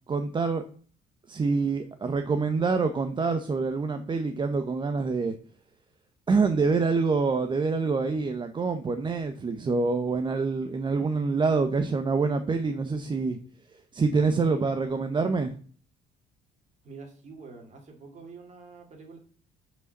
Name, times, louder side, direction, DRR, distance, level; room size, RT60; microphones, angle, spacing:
voice 1, 0.1-0.6 1.3-5.3 6.3-13.4 13.9-15.5, right 4 dB, 25° right, 7 dB, 0.8 m, -26 dB
voice 2, 16.8-19.2, right 4 dB, 45° right, 3 dB, 2.7 m, -46 dB
5.6 x 5.0 x 6.5 m, 0.43 s
cardioid pair, 110°, 17 cm